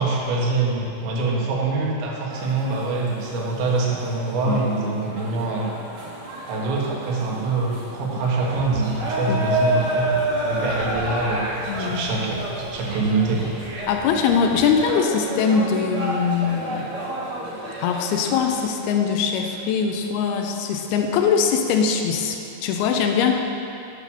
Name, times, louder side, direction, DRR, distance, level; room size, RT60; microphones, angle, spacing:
voice 1, 0.0-5.7 6.4-11.4 11.8-13.6, right 3 dB, 90° right, -3 dB, 3.6 m, -24 dB
sound 1, 2.3-18.6, right 1 dB, 65° right, 1.3 m, -30 dB
sound 2, 8.4-14.9, right 1 dB, 65° left, 1.9 m, -41 dB
voice 2, 11.7-12.0 13.9-16.9 17.8-23.3, left 6 dB, 80° left, 4 dB, 2.4 m, -22 dB
9.1 x 6.0 x 6.9 m, 2.7 s
omnidirectional pair, 5.0 m